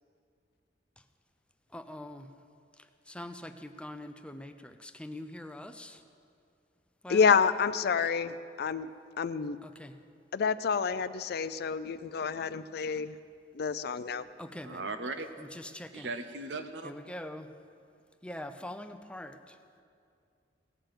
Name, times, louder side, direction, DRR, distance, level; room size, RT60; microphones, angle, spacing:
voice 1, 1.7-2.3 3.1-6.0 7.0-7.3 9.6-10.0 14.4-14.9 15.4-16.1 16.8-17.5 18.2-19.6, left 1 dB, 5° left, 0.5 m, -43 dB
voice 2, 7.1-8.9 9.2-9.6 10.3-13.1 13.5-14.3, left 6 dB, 60° left, 0.4 m, -28 dB
voice 3, 14.6-15.5 15.9-16.9, right 3 dB, 75° right, 0.9 m, -38 dB
18.0 x 6.7 x 7.8 m
head